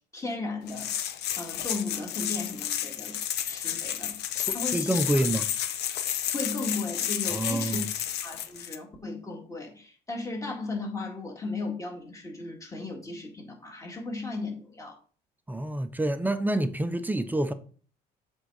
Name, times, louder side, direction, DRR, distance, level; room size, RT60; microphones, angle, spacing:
voice 1, 0.1-0.9 1.4-3.2 3.4-4.2 4.5-5.3 6.3-7.9 8.2-15.0, left 3 dB, 20° left, 2.2 m, -36 dB
sound 1, 0.7-8.8, left 10 dB, 75° left, 0.8 m, -31 dB
voice 2, 4.5-5.5 7.3-7.8 15.5-17.5, right 1 dB, 10° right, 0.6 m, -27 dB
7.8 x 3.7 x 4.7 m
cardioid pair, 110°, 17 cm